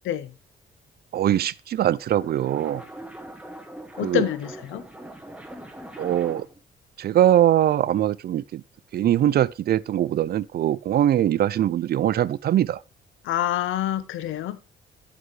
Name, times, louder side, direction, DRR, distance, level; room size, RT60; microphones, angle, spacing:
voice 1, 1.1-2.8 4.0-4.2 6.0-6.5 7.0-8.6 8.9-12.8, right 11 dB, 55° right, 0.4 m, -22 dB
sound 1, 1.9-6.6, right 1 dB, 5° right, 1.4 m, -41 dB
voice 2, 4.0-4.8 13.2-14.6, left 11 dB, 80° left, 0.7 m, -27 dB
8.0 x 7.8 x 3.2 m
cardioid pair, 90°, 20 cm